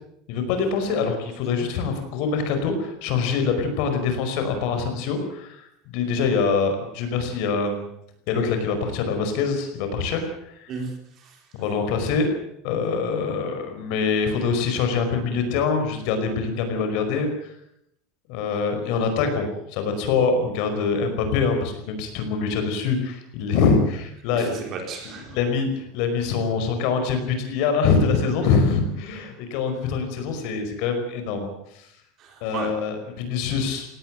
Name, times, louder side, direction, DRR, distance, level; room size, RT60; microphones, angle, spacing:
voice 1, 0.3-7.9 8.3-10.7 11.5-12.3 12.6-17.5 18.3-24.6 25.3-31.9 32.4-33.9, left 5 dB, 50° left, 7 dB, 5.1 m, -24 dB
voice 2, 10.7-11.4 24.3-25.4 30.2-30.3 32.2-32.7, right 4 dB, 30° right, 3 dB, 4.5 m, -34 dB
18.5 x 17.0 x 9.3 m, 0.76 s
cardioid pair, 180°, 0 cm